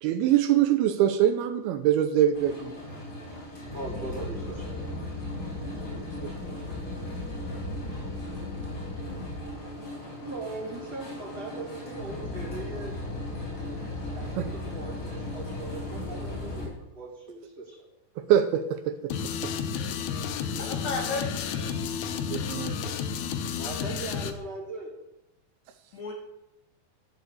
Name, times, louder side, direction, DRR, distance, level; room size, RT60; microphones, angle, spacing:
voice 1, 0.0-2.7 5.6-6.7 14.4-14.5 18.2-19.1 19.4-19.5 22.3-22.9, right 11 dB, 85° right, 7 dB, 2.6 m, -25 dB
sound 1, 2.3-16.7, left 2 dB, 40° left, 5.3 m, -36 dB
voice 2, 3.7-4.9 10.1-12.9 14.1-14.3 14.7-17.8 20.5-20.6 23.6-24.9, right 3 dB, 30° right, -3 dB, 2.4 m, -39 dB
sound 2, 19.1-24.3, left 7 dB, 80° left, 1.7 m, -31 dB
voice 3, 20.6-21.9 25.9-26.1, left 3 dB, 60° left, -1 dB, 2.4 m, -34 dB
13.0 x 4.8 x 7.8 m, 0.89 s
omnidirectional pair, 4.4 m